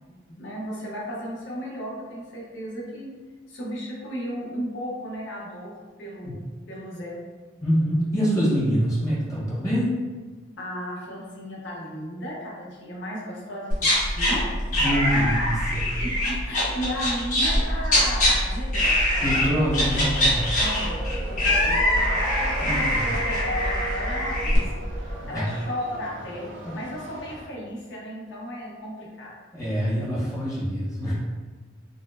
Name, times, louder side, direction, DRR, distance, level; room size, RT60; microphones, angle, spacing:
voice 1, 0.1-3.1 3.5-6.4 6.7-7.2 10.6-14.5 16.0-19.3 20.5-22.2 22.5-29.3, equal, 70° left, -4 dB, 0.9 m, -35 dB
voice 2, 7.6-9.9 14.8-15.9 19.2-20.4 22.6-23.1 25.2-25.5 26.6-26.8 29.5-31.1, equal, 15° left, -8 dB, 1.0 m, -25 dB
sound 1, 13.7-14.3 14.7-17.6 17.8-18.3 18.7-19.5 19.7-24.6, left 1 dB, 40° left, 1.0 m, -24 dB
sound 2, 14.0-25.1, equal, 5° right, 0.4 m, -30 dB
sound 3, 19.1-27.4, right 1 dB, 85° right, 0.7 m, -38 dB
4.0 x 2.0 x 2.6 m, 1.4 s
head